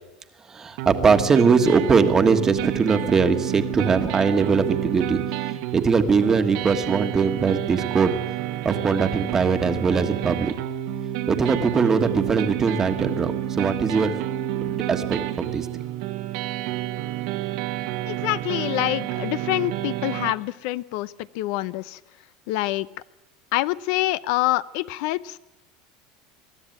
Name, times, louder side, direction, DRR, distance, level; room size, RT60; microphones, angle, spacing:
voice 1, 0.4-8.1 8.6-10.5 11.3-14.2 14.6-15.7, right 5 dB, 20° right, 8 dB, 1.5 m, -21 dB
sound 1, 0.8-20.3, right 12 dB, 70° right, 1.6 m, -29 dB
voice 2, 18.0-22.0 22.5-22.9 23.5-25.4, left 17 dB, 65° left, 17 dB, 0.6 m, -26 dB
22.0 x 13.0 x 9.2 m, 0.98 s
supercardioid pair, 135°, 2 cm